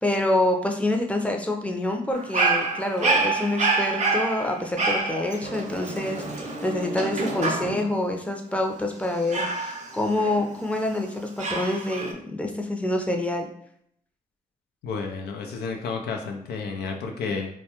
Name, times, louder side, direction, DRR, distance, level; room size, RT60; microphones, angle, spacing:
voice 1, 0.0-13.5, left 1 dB, 10° left, 2 dB, 0.5 m, -27 dB
Dog, 2.1-8.0 9.3-10.8 11.4-12.1, right 3 dB, 50° right, 0.5 m, -27 dB
voice 2, 14.8-17.5, left 4 dB, 90° left, 3 dB, 0.4 m, -31 dB
2.2 x 2.2 x 2.8 m, 0.70 s
supercardioid pair, 45°, 16 cm